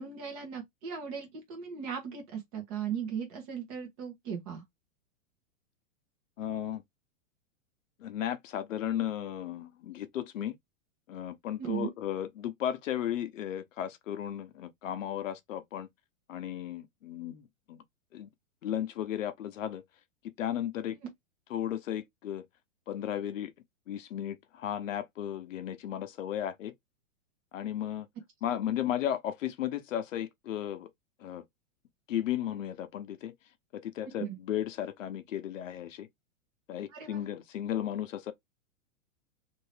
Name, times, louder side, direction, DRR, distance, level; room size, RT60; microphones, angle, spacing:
voice 1, 0.0-4.6 11.6-11.9 34.2-34.4 36.9-37.2, right 7 dB, 30° right, 1.0 m, -37 dB
voice 2, 6.4-6.8 8.0-10.6 11.1-15.9 16.3-17.4 17.7-17.8 18.1-18.3 18.6-19.8 20.4-21.0 21.5-22.4 22.9-23.5 23.9-26.7 27.5-28.1 28.4-30.9 31.2-31.4 32.1-33.3 33.8-36.1 36.7-38.3, left 11 dB, 70° left, 0.7 m, -34 dB
2.8 x 2.6 x 3.2 m
supercardioid pair, 170°, 40 cm